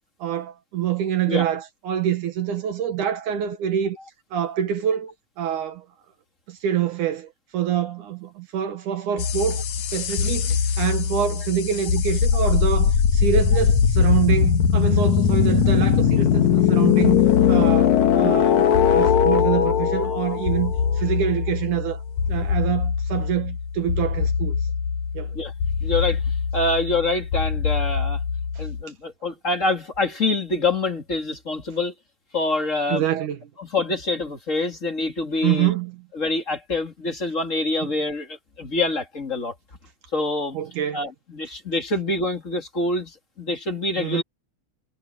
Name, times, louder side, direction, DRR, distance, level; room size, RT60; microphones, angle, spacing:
voice 1, 0.2-4.0 4.3-5.9 6.5-9.6 9.9-17.2 17.5-24.7 25.1-25.4 28.6-28.7 32.9-33.5 35.4-36.0 40.5-41.1 44.0-44.2, right 9 dB, 75° right, 3.0 m, -26 dB
sound 1, 9.2-28.8, left 7 dB, 70° left, 2.8 m, -21 dB
voice 2, 25.8-26.2 26.5-28.2 28.6-31.9 32.3-33.0 33.6-35.7 36.1-39.5 40.1-40.6 40.9-44.2, left 2 dB, 25° left, 2.6 m, -25 dB
omnidirectional pair, 3.6 m